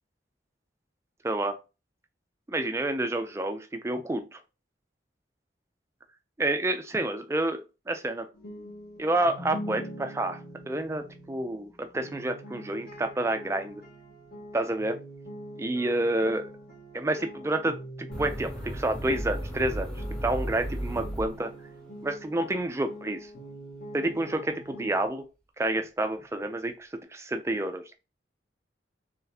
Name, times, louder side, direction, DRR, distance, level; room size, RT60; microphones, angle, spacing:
voice 1, 1.2-1.6 2.5-4.4 6.4-8.3 9.0-13.8 14.5-15.0 15.6-16.4 16.9-17.8 18.2-19.9 20.2-21.5 22.0-23.3 23.9-25.3 25.6-28.0, right 2 dB, 15° right, 0.4 m, -29 dB
sound 1, 8.3-25.1, equal, 55° left, 1.4 m, -44 dB
sound 2, 18.1-21.9, equal, 5° left, 0.8 m, -35 dB
4.0 x 3.3 x 2.7 m
head